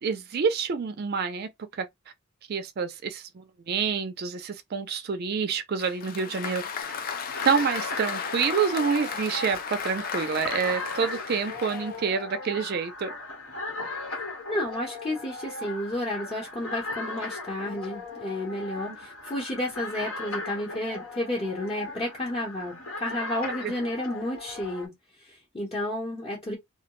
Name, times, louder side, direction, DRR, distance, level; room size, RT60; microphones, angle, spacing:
voice 1, 0.0-1.9 2.5-6.6 7.4-13.1 18.9-19.0 23.6-23.7, right 6 dB, 50° right, 0.4 m, -28 dB
Applause, 5.8-12.1, left 6 dB, 45° left, 0.4 m, -35 dB
sound 1, 6.8-24.9, left 2 dB, 80° left, 1.3 m, -38 dB
voice 2, 14.5-24.9 25.3-26.6, left 1 dB, 25° left, 0.8 m, -31 dB
2.2 x 2.1 x 2.9 m
head